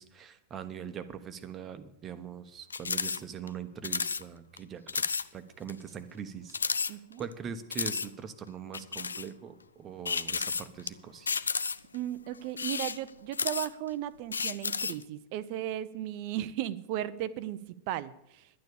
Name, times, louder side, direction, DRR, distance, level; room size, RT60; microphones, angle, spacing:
voice 1, 0.0-11.4, right 7 dB, 25° right, 11 dB, 1.0 m, -42 dB
sound 1, 2.7-3.2 3.5-3.6 3.8-4.2 4.6-4.7 4.9-5.2 5.7-5.8 6.5-7.3 7.7-8.1 8.7-9.3 10.0-10.9 11.3-12.0 12.5-13.9 14.3-15.0, left 5 dB, 75° left, 0.4 m, -32 dB
voice 2, 6.9-7.2 11.9-17.6 17.9-18.4, right 12 dB, 45° right, 15 dB, 0.6 m, -35 dB
11.5 x 9.1 x 7.0 m, 0.84 s
figure-of-eight pair, 90°, 0 cm